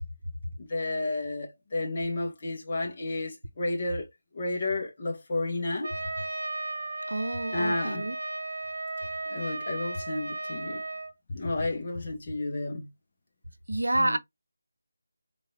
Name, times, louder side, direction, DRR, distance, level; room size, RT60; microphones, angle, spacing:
voice 1, 0.6-4.1 4.3-5.9 7.5-8.0 9.3-10.8 11.3-12.9 14.0-14.2, left 2 dB, 40° left, 1.4 m, -31 dB
Trumpet, 5.8-11.1, right 2 dB, 60° right, 1.0 m, -35 dB
voice 2, 7.1-8.2 13.7-14.2, right 1 dB, 85° right, 0.6 m, -28 dB
3.7 x 2.7 x 3.0 m
figure-of-eight pair, 160°, 0 cm